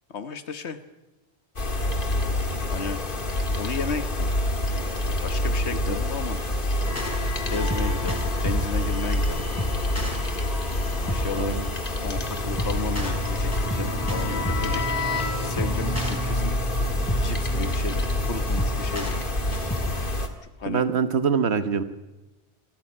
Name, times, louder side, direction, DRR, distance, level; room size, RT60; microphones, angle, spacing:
voice 1, 0.1-0.8 2.7-3.0 3.5-4.3 5.0-6.4 7.5-9.5 11.0-11.6 12.0-14.8 15.2-16.5 17.1-19.2 20.6-20.9, left 6 dB, 80° left, 10 dB, 1.5 m, -33 dB
sound 1, 1.6-20.3, left 1 dB, 50° left, 2.1 m, -27 dB
sound 2, 6.8-20.1, equal, 15° left, 4.2 m, -32 dB
voice 2, 11.3-11.6 20.6-21.8, right 6 dB, 80° right, 11 dB, 1.4 m, -24 dB
27.0 x 14.0 x 9.8 m, 1.1 s
omnidirectional pair, 1.1 m